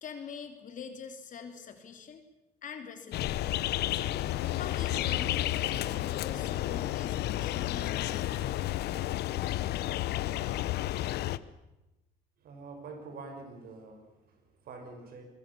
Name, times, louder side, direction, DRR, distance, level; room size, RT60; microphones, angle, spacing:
voice 1, 0.0-2.2 2.6-3.4 3.9-4.2 4.5-8.6, left 6 dB, 50° left, 6 dB, 3.4 m, -44 dB
sound 1, 3.1-11.4, left 14 dB, 75° left, 1.0 m, -31 dB
voice 2, 12.4-15.2, right 3 dB, 60° right, 5 dB, 6.0 m, -46 dB
25.5 x 22.0 x 7.1 m, 0.98 s
cardioid pair, 110°, 17 cm